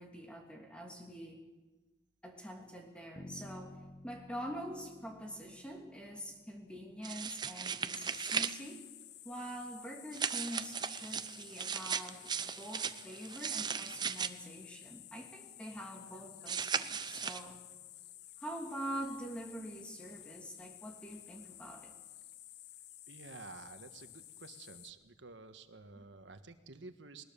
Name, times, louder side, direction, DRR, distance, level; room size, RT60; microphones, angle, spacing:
voice 1, 0.0-1.4 2.2-3.7 4.0-8.8 9.2-17.6 18.4-21.9, equal, 5° left, 1 dB, 2.8 m, -45 dB
Bass guitar, 3.2-7.1, left 1 dB, 35° left, 0.9 m, -53 dB
sound 1, 7.0-8.5 10.1-14.3 16.5-17.4, right 6 dB, 25° right, 0.6 m, -37 dB
sound 2, 8.1-24.9, left 13 dB, 60° left, 0.8 m, -54 dB
voice 2, 23.1-27.2, right 3 dB, 85° right, 9 dB, 1.5 m, -51 dB
20.5 x 20.0 x 6.9 m, 1.2 s
head